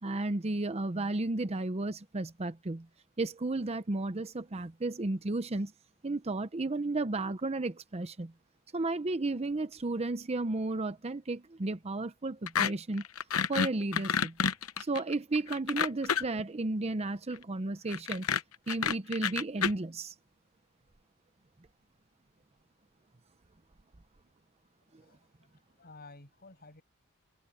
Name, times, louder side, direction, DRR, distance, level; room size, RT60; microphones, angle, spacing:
voice 1, 0.0-2.9 3.2-5.7 6.0-8.3 8.7-13.0 13.5-14.4 14.8-18.3 18.7-20.1, right 2 dB, 30° right, 0.7 m, -33 dB
sound 1, 12.5-12.7 13.0-16.4 17.9-19.7, left 7 dB, 85° left, 0.9 m, -29 dB
voice 2, 24.9-26.8, left 3 dB, 45° left, 6.5 m, -54 dB
head